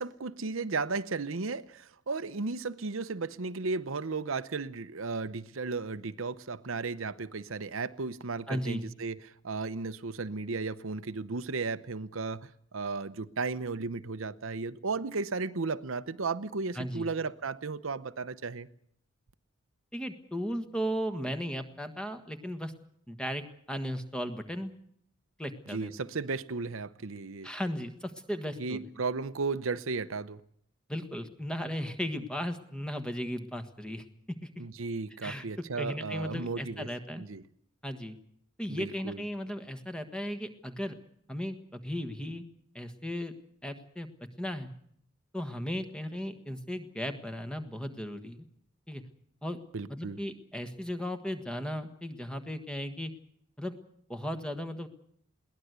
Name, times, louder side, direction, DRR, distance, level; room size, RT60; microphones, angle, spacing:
voice 1, 0.0-18.7 25.7-27.5 28.6-30.4 34.6-36.9 37.2-37.4 38.7-39.2 49.7-50.2, right 4 dB, 75° right, 0.8 m, -35 dB
voice 2, 8.5-8.9 16.7-17.1 19.9-22.7 23.1-24.7 25.4-25.9 27.4-28.9 30.9-34.0 34.4-34.5 35.2-35.4 35.7-37.2 37.8-38.2 38.6-41.0 41.3-42.4 42.7-43.3 43.6-44.1 44.4-44.7 45.3-48.4 48.9-49.0 49.4-49.6 49.9-53.1 53.6-53.7 54.1-54.9, equal, 5° left, 1.5 m, -36 dB
22.0 x 18.0 x 8.1 m
head